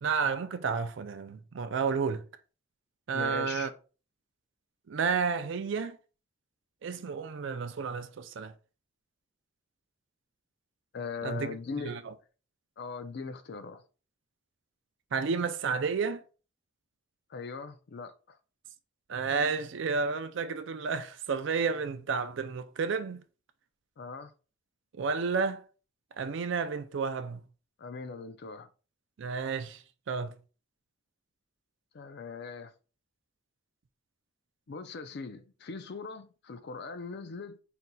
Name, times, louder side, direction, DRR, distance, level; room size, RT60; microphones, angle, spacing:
voice 1, 0.0-2.2 3.1-3.7 4.9-6.0 6.8-8.5 11.2-11.5 11.9-12.0 15.1-16.2 19.1-23.2 24.9-25.6 26.2-27.4 29.2-30.3, right 5 dB, 60° right, 0.4 m, -31 dB
voice 2, 3.1-3.7 10.9-12.0 12.8-13.8 17.3-18.4 24.0-24.3 27.8-28.7 31.9-32.7 34.7-37.6, left 5 dB, 55° left, 0.4 m, -40 dB
4.3 x 4.0 x 2.2 m
head